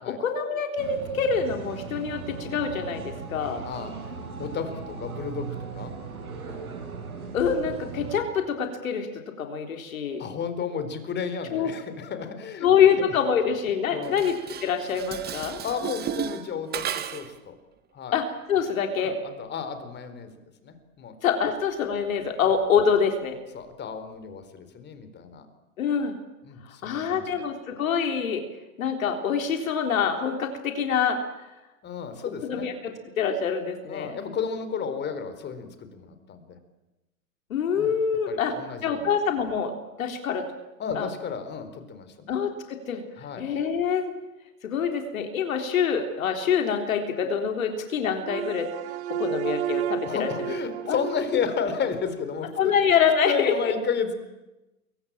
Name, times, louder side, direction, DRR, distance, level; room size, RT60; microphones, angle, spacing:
voice 1, 0.1-3.6 7.3-9.1 9.4-10.3 11.5-11.7 12.6-14.3 14.6-15.6 18.1-18.2 18.5-19.2 21.2-23.4 25.8-26.2 26.7-28.4 28.8-31.2 32.4-34.2 37.5-38.5 38.8-39.7 40.0-40.5 41.0-41.1 42.3-43.0 43.4-44.1 44.6-48.7 49.2-50.5 50.9-51.0 52.6-53.7, left 7 dB, 65° left, 5 dB, 3.9 m, -25 dB
sound 1, 0.8-8.2, right 5 dB, 75° right, 6.5 m, -38 dB
voice 2, 4.4-5.5 5.7-5.9 10.2-12.7 13.9-14.2 15.6-17.6 17.9-18.2 19.0-20.3 20.6-21.1 23.5-25.5 26.4-27.4 31.8-32.7 33.8-36.6 37.7-37.9 38.3-39.1 40.8-42.4 43.2-43.4 50.0-52.7 53.2-54.1, left 6 dB, 25° left, 10 dB, 4.2 m, -32 dB
Dishes pots and pans, 14.0-17.4, right 8 dB, 20° right, 1.6 m, -34 dB
sound 2, 48.2-52.5, right 11 dB, 50° right, 1.1 m, -33 dB
28.0 x 23.0 x 8.9 m, 1.0 s
hypercardioid pair, 105°, 43 cm